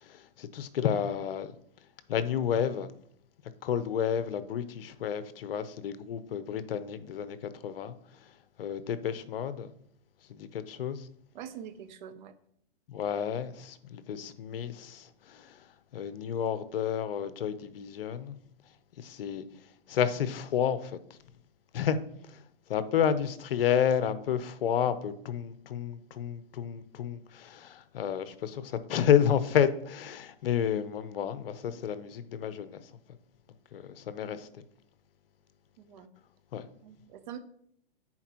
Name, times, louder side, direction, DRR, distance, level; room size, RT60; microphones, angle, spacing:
voice 1, 0.0-1.5 2.1-2.9 3.6-7.9 8.6-9.7 10.3-11.1 12.9-15.6 15.9-18.4 19.0-19.4 19.9-21.0 21.7-22.0 22.3-22.4 22.7-32.8 33.7-34.5 36.5-36.6, left 8 dB, 65° left, 0.7 m, -30 dB
voice 2, 11.3-12.3 35.8-36.1 36.8-37.4, right 9 dB, 50° right, 0.7 m, -44 dB
9.7 x 4.4 x 2.9 m
hypercardioid pair, 135°, 30 cm